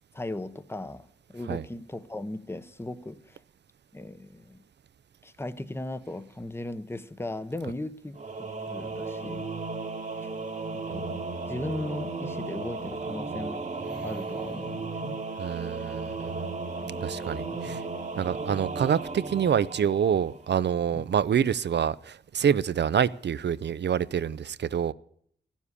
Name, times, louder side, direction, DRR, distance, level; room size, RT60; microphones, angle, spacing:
voice 1, 0.1-3.4 3.9-4.6 5.2-9.5 10.7-11.2 11.5-13.7 14.0-15.2 17.5-17.8 20.9-21.0, left 2 dB, 15° left, 0.8 m, -37 dB
Singing / Musical instrument, 8.1-20.6, right 3 dB, 40° right, 1.2 m, -35 dB
voice 2, 15.4-16.5 17.0-17.8 18.2-24.9, right 8 dB, 75° right, 0.5 m, -27 dB
15.0 x 7.3 x 9.8 m
wide cardioid pair, 110°, 18 cm